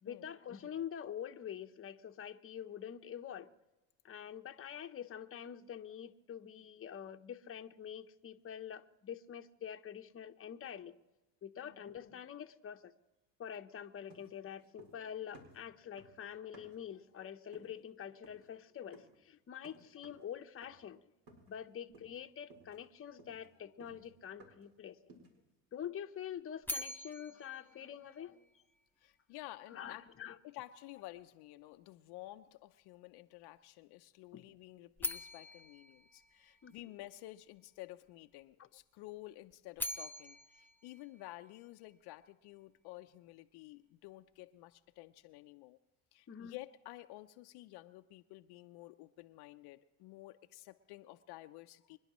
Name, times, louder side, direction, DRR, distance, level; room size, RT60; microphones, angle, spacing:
voice 1, 0.0-3.5 4.0-10.9 11.4-12.9 13.4-21.0 21.5-25.0 25.7-28.5 29.7-30.4 34.3-34.4 36.6-36.7 46.3-46.5, left 9 dB, 30° left, 7 dB, 0.9 m, -46 dB
sound 1, 14.1-15.1 15.3-16.9 17.5-17.8 18.2-18.5 18.9-19.2 19.6-20.3 20.6-20.9 21.3-21.6 21.9-22.2 22.5-24.7 25.1-25.4, right 2 dB, 55° right, 4.5 m, -60 dB
sound 2, 26.6-28.8 35.0-37.1 39.5-41.9, left 1 dB, 5° left, 0.7 m, -44 dB
voice 2, 29.0-30.0 30.4-45.8 46.1-52.0, left 17 dB, 65° left, 7 dB, 0.7 m, -52 dB
26.0 x 10.5 x 3.1 m, 1.0 s
supercardioid pair, 80°, 42 cm